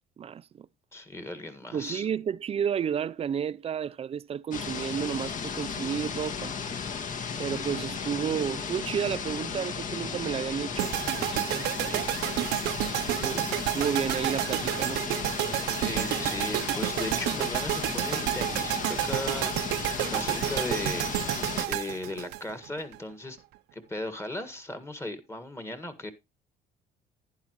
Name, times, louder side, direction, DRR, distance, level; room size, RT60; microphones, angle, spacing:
voice 1, 0.2-0.7 1.7-6.5 7.4-12.1 13.1-15.0, right 8 dB, 35° right, 0.5 m, -32 dB
voice 2, 0.9-2.1 15.8-19.8 20.1-21.1 21.7-23.4 23.7-26.1, left 1 dB, 15° left, 1.7 m, -37 dB
sound 1, 4.5-21.7, left 6 dB, 50° left, 1.7 m, -35 dB
sound 2, 10.8-23.0, right 16 dB, 85° right, 0.7 m, -30 dB
11.5 x 10.0 x 3.0 m
cardioid pair, 110°, 17 cm